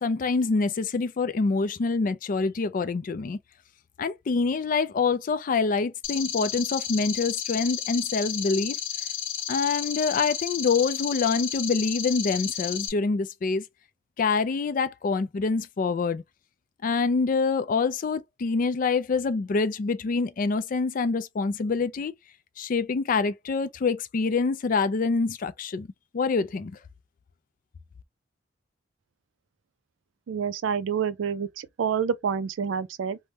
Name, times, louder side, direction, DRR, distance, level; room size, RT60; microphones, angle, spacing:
voice 1, 0.0-3.4 4.0-8.8 9.5-13.6 14.2-16.2 16.8-22.1 22.6-25.9 26.1-26.8, left 4 dB, 45° left, 0.3 m, -26 dB
sound 1, 6.0-12.9, left 9 dB, 90° left, 0.7 m, -32 dB
voice 2, 30.3-33.2, right 7 dB, 85° right, 0.4 m, -28 dB
3.4 x 2.1 x 2.7 m
head